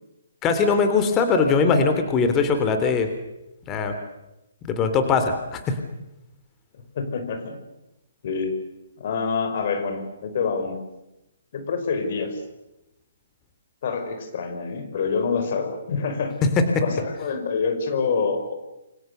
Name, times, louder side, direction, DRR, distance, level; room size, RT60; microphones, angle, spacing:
voice 1, 0.4-3.1 3.7-3.9 4.6-5.8, left 5 dB, 20° left, 7 dB, 3.5 m, -21 dB
voice 2, 6.9-7.6 8.2-8.6 9.0-10.8 11.5-12.4 13.8-16.5 16.8-18.5, left 5 dB, 50° left, 7 dB, 5.6 m, -26 dB
29.5 x 24.0 x 7.0 m, 0.92 s
figure-of-eight pair, 140°, 0 cm